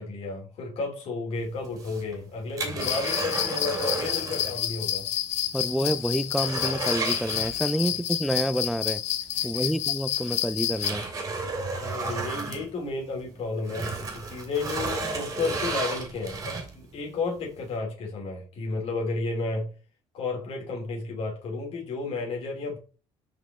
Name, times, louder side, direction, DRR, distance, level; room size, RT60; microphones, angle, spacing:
voice 1, 0.0-5.1 9.5-9.7 11.8-19.7 20.1-22.8, left 3 dB, 60° left, 2.8 m, -32 dB
sound 1, 1.6-4.6 4.9-5.0 5.5-5.6 5.9-8.0 9.4-9.5 10.1-13.2 13.6-16.9 17.4-17.5, right 3 dB, 30° right, 2.1 m, -33 dB
sound 2, 2.8-10.9, left 12 dB, 75° left, 0.7 m, -29 dB
voice 2, 5.5-9.0 9.4-11.0, equal, ahead, 0.3 m, -28 dB
5.4 x 5.2 x 3.6 m
cardioid pair, 130°, 11 cm